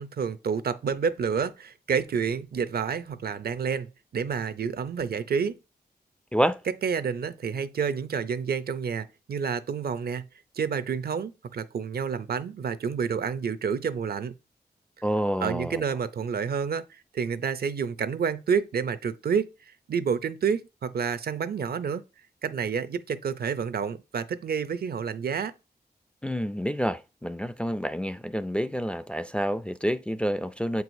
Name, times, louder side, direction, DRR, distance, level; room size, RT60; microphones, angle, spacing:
voice 1, 0.0-5.6 6.6-10.2 10.6-14.3 15.4-19.5 19.9-22.0 22.4-25.5, right 6 dB, 65° right, 0.5 m, -29 dB
voice 2, 6.3-6.6 15.0-15.8 26.2-30.8, equal, 5° left, 0.3 m, -28 dB
7.5 x 4.7 x 2.6 m
wide cardioid pair, 75°, 17 cm